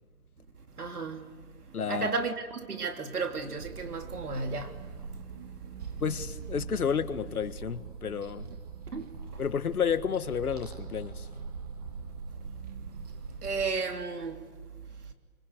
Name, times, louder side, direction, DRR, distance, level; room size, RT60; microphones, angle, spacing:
voice 1, 0.8-1.3 1.9-4.7 8.9-9.1 13.4-14.4, right 4 dB, 85° right, 3.4 m, -33 dB
voice 2, 1.7-2.1 6.0-8.5 9.4-11.3, left 7 dB, 75° left, 1.7 m, -31 dB
sound 1, 3.6-13.7, right 5 dB, 25° right, 1.3 m, -42 dB
25.0 x 24.5 x 8.1 m
hypercardioid pair, 170°, 44 cm